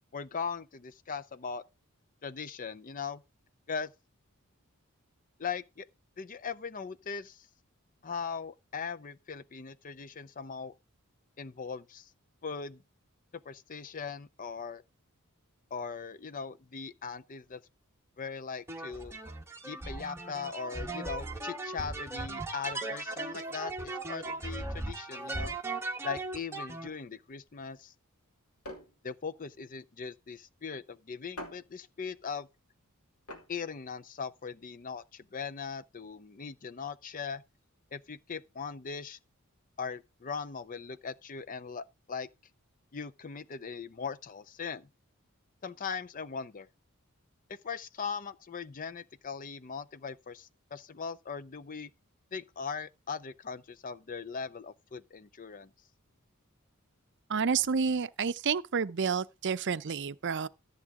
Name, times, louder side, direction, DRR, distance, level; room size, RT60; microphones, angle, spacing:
voice 1, 0.1-1.6 2.2-3.2 3.7-3.9 5.4-5.9 6.2-7.5 8.0-10.7 11.4-12.1 12.4-12.8 13.3-14.8 15.7-17.6 18.2-19.2 19.6-23.7 24.1-25.6 26.0-27.9 29.0-32.5 33.5-37.4 37.9-39.2 39.8-42.3 42.9-44.9 45.6-46.7 47.6-51.9 52.3-55.7, left 5 dB, 40° left, 0.5 m, -39 dB
sound 1, 18.7-26.9, right 2 dB, 10° right, 1.2 m, -38 dB
sound 2, 23.4-34.8, left 1 dB, 85° left, 2.6 m, -52 dB
voice 2, 57.3-60.5, right 6 dB, 55° right, 0.6 m, -30 dB
14.0 x 7.3 x 3.6 m
head